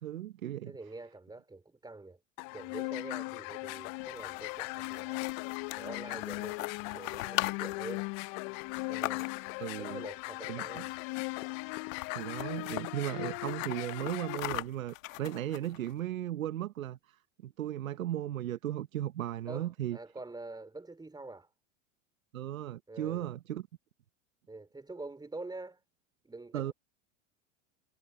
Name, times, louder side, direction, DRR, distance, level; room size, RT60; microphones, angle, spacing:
voice 1, 0.0-0.7 9.6-10.0 10.5-10.8 12.1-20.0 22.3-23.6 26.5-26.7, right 12 dB, 90° right, 1.0 m, -36 dB
voice 2, 0.7-2.2 2.5-5.3 5.7-8.1 8.9-9.3 9.8-10.9 12.5-12.9 19.5-21.5 22.9-23.3 24.5-25.8 26.2-26.7, right 2 dB, 10° right, 4.5 m, -46 dB
sound 1, 2.4-14.4, left 29 dB, 50° left, 0.6 m, -38 dB
sound 2, 4.0-9.6 10.7-11.1 11.4-11.5 11.8-12.8 13.3-15.9, left 17 dB, 75° left, 1.3 m, -40 dB
hypercardioid pair, 95°, 40 cm